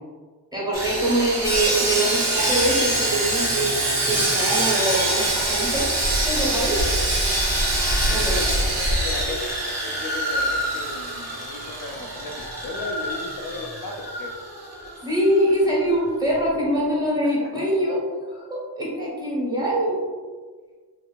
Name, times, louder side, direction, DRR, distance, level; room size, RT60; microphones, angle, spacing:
voice 1, 0.5-5.9 6.2-6.8 8.1-8.4 15.0-20.0, right 1 dB, 10° right, -7 dB, 1.2 m, -24 dB
Sawing, 0.7-15.0 15.2-15.4 15.9-16.0, right 1 dB, 40° right, 1.1 m, -24 dB
voice 2, 8.1-14.4 16.8-16.9 17.4-17.5 19.4-19.8, left 2 dB, 55° left, 0 dB, 0.4 m, -36 dB
3.0 x 2.5 x 2.4 m, 1.5 s
cardioid pair, 70°, 42 cm